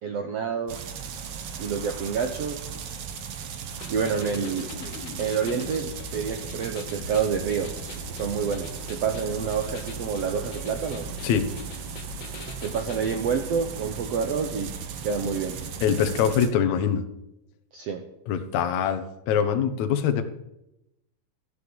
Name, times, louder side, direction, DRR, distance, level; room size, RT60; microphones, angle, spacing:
voice 1, 0.0-0.8 1.6-2.6 3.9-4.7 5.2-7.7 8.1-11.1 12.6-14.7 15.0-15.6 17.7-18.0, right 6 dB, 90° right, 5 dB, 1.4 m, -28 dB
sound 1, 0.7-16.5, right 7 dB, 70° right, 1.3 m, -37 dB
sound 2, 3.8-13.2, left 5 dB, 80° left, 3.1 m, -42 dB
voice 2, 15.8-17.0 18.3-20.2, left 8 dB, 65° left, 7 dB, 2.0 m, -23 dB
14.0 x 6.6 x 8.5 m, 0.87 s
omnidirectional pair, 4.3 m